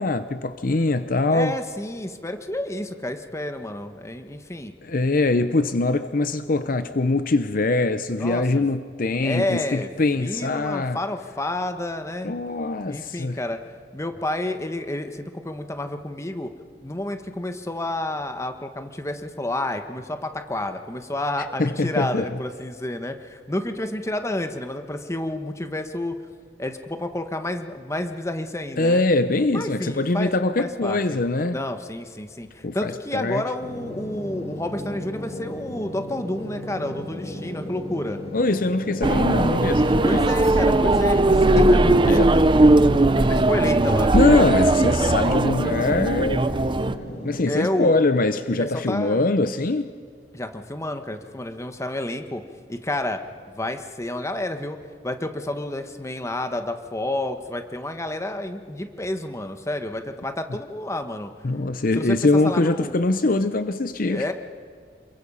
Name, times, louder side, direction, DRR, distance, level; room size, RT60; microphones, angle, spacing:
voice 1, 0.0-1.6 4.8-11.0 12.2-13.4 21.6-22.4 28.8-31.6 32.6-33.4 38.3-40.3 42.1-42.3 44.1-46.5 47.2-49.9 61.4-64.3, left 2 dB, 55° left, 11 dB, 0.8 m, -23 dB
voice 2, 1.3-4.7 8.1-8.7 9.2-9.9 10.2-12.4 12.9-13.6 13.9-16.5 16.8-26.1 26.6-29.0 29.5-31.2 31.5-38.2 40.0-42.9 43.1-44.7 47.5-47.9 48.6-49.2 50.3-52.4 52.7-53.2 53.5-54.8 55.0-61.3 61.9-62.2 62.4-62.9 64.1-64.3, left 1 dB, 15° left, 7 dB, 1.3 m, -30 dB
sound 1, 33.6-47.6, equal, 40° left, 5.4 m, -36 dB
sound 2, 39.0-47.0, right 2 dB, 30° right, 0.6 m, -18 dB
28.0 x 22.5 x 5.6 m, 2.1 s
head